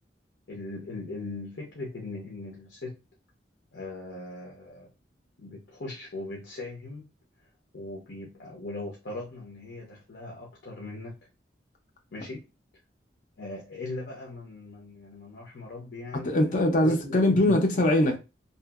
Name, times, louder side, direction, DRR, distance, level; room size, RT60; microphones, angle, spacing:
voice 1, 0.5-2.9 3.7-4.9 5.4-7.1 7.7-11.1 12.1-12.4 13.4-16.4 16.8-17.6, left 2 dB, 80° left, 0.7 m, -39 dB
voice 2, 16.2-18.2, left 1 dB, 45° left, 0.5 m, -22 dB
2.7 x 2.4 x 2.3 m
head